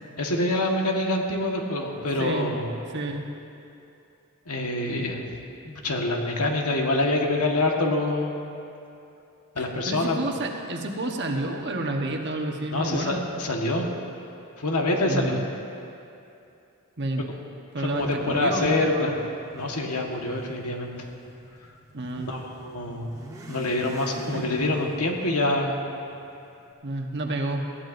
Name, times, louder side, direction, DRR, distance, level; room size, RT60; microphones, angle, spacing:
voice 1, 0.2-2.7 4.5-5.2 5.6-8.3 9.5-10.2 12.7-13.9 14.6-15.4 17.2-17.3 17.8-19.2 19.5-20.9 22.2-23.1 23.5-25.8, left 2 dB, 85° left, 1 dB, 1.5 m, -26 dB
voice 2, 2.2-2.5 2.9-3.3 9.9-13.3 15.1-15.4 17.0-17.2 17.7-19.2 21.9-22.3 24.3-24.4 26.8-27.7, right 2 dB, 50° right, 2 dB, 1.2 m, -29 dB
Motorcycle / Accelerating revving vroom, 17.8-26.7, equal, 15° right, 1.2 m, -46 dB
20.0 x 15.0 x 2.6 m, 2.7 s
head